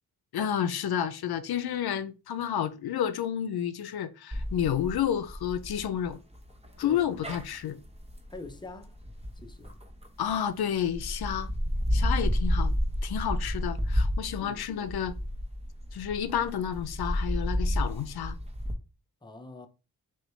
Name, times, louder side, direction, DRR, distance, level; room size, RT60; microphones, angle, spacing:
voice 1, 0.3-6.2 6.8-7.8 10.2-11.5 11.9-12.7 13.0-15.2 15.9-18.4, left 9 dB, 90° left, 0.5 m, -30 dB
sound 1, 4.3-10.3 10.8-18.7, equal, 15° right, 0.8 m, -31 dB
voice 2, 8.3-9.0 9.3-9.8 14.4-14.7 19.2-19.7, left 3 dB, 10° left, 0.6 m, -44 dB
6.1 x 2.3 x 3.1 m
wide cardioid pair, 95°, 36 cm